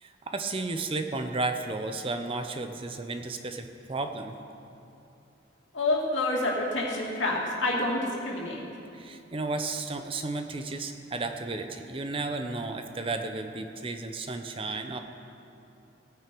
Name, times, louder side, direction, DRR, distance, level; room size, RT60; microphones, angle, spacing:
voice 1, 0.0-4.4 8.9-15.0, right 3 dB, 30° right, 7 dB, 0.6 m, -33 dB
voice 2, 5.7-8.6, left 2 dB, 80° left, -3 dB, 2.6 m, -28 dB
17.5 x 9.4 x 4.6 m, 2.7 s
head